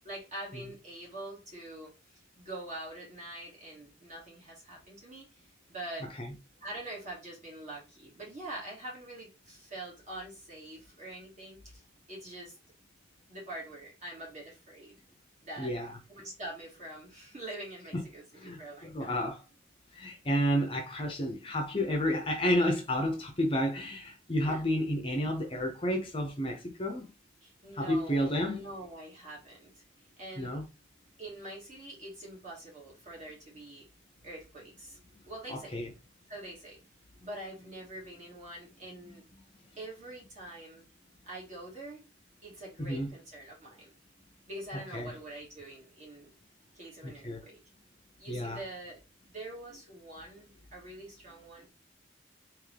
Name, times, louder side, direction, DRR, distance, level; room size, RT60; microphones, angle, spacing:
voice 1, 0.0-6.1 6.6-11.8 12.1-12.6 13.3-15.0 15.4-15.8 16.1-19.2 24.4-24.7 27.4-29.8 30.2-30.6 31.2-33.9 34.2-35.0 35.2-35.8 36.3-36.8 37.2-39.2 39.8-40.9 41.2-42.1 42.4-43.9 44.5-46.3 46.7-47.6 48.2-49.0 49.3-51.7, right 1 dB, 35° right, 1.9 m, -45 dB
voice 2, 15.6-16.0 17.9-18.0 18.4-19.4 19.9-27.1 27.7-28.7 30.4-30.6 35.5-35.9 39.1-39.4 42.8-43.1 44.9-45.2 47.0-47.4 48.3-48.6, equal, 25° left, 0.7 m, -31 dB
3.6 x 3.1 x 3.4 m
head